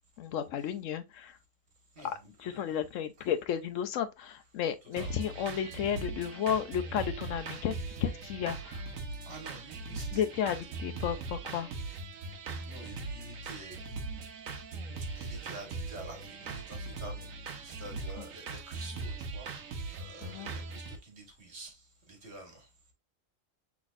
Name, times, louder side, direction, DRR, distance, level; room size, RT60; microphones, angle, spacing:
voice 1, 0.2-1.4 2.4-8.9 10.1-11.7 20.2-20.5, left 9 dB, 75° left, 0.9 m, -33 dB
voice 2, 1.9-2.8 3.2-3.3 4.8-5.3 9.2-10.2 10.6-10.7 11.0-11.1 12.7-14.1 15.1-17.3 17.6-22.7, right 2 dB, 55° right, 1.7 m, -49 dB
sound 1, 5.0-21.0, right 3 dB, 85° right, 1.2 m, -40 dB
5.9 x 3.5 x 2.4 m
omnidirectional pair, 1.4 m